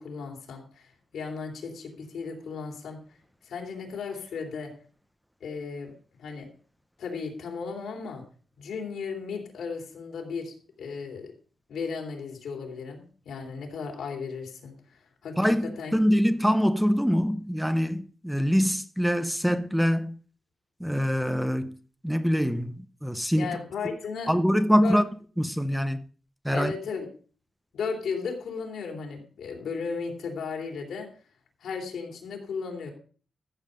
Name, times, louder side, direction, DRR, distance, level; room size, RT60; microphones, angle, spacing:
voice 1, 0.0-3.2 3.4-4.7 5.4-5.9 6.2-6.5 7.0-8.2 8.6-11.3 11.7-15.4 15.8-15.9 23.4-24.3 24.8-25.0 26.5-27.1 27.7-31.1 31.6-32.9, left 5 dB, 90° left, 3.2 m, -35 dB
voice 2, 15.4-20.1 20.8-21.8 22.0-23.5 24.3-25.1 25.4-26.0 26.4-26.7, equal, ahead, 0.6 m, -24 dB
14.0 x 7.4 x 5.2 m
wide cardioid pair, 160°, 0 cm